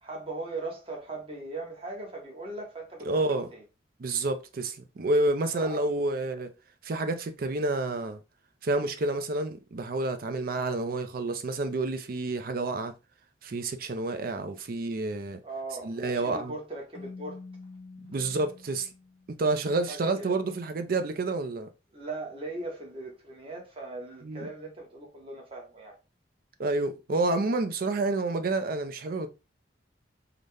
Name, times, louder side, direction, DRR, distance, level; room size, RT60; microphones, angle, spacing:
voice 1, 0.0-3.6 5.5-5.9 15.4-17.5 19.9-20.3 21.9-26.0, right 2 dB, 30° right, 1.0 m, -39 dB
voice 2, 3.1-3.5 4.0-6.5 6.8-8.2 8.6-12.9 13.4-15.4 15.8-16.5 18.1-18.9 19.4-21.7 24.2-24.5 26.6-29.3, right 2 dB, 50° right, 0.4 m, -29 dB
Keyboard (musical), 16.9-19.7, left 3 dB, 30° left, 0.4 m, -47 dB
3.9 x 2.1 x 3.2 m
head